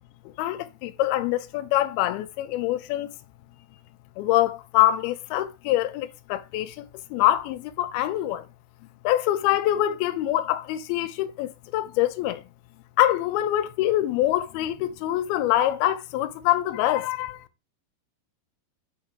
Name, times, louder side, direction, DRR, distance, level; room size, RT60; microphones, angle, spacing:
voice 1, 0.4-3.1 4.2-8.4 9.0-12.4 13.0-17.4, left 14 dB, 80° left, 2.4 m, -24 dB
5.7 x 5.6 x 4.5 m
omnidirectional pair, 4.8 m